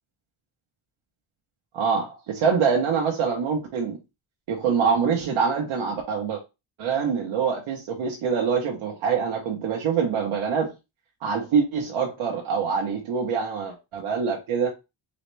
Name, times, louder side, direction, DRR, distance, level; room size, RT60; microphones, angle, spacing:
voice 1, 1.7-4.0 4.5-6.4 6.8-10.7 11.2-14.7, right 6 dB, 80° right, 1.1 m, -25 dB
4.0 x 3.1 x 3.2 m
wide cardioid pair, 160°, 47 cm